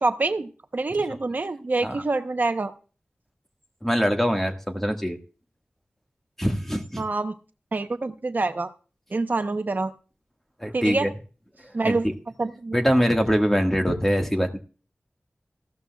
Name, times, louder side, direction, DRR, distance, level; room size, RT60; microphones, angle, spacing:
voice 1, 0.0-2.7 7.0-7.3 7.7-8.7 9.1-9.9 10.7-11.1 11.7-12.1 12.4-12.7, right 3 dB, 50° right, 8 dB, 0.8 m, -26 dB
voice 2, 3.8-5.2 6.4-7.0 10.6-11.1 11.8-11.9 12.7-14.6, equal, 5° left, 4 dB, 1.6 m, -23 dB
15.5 x 12.5 x 2.3 m, 0.37 s
wide cardioid pair, 85°, 4 cm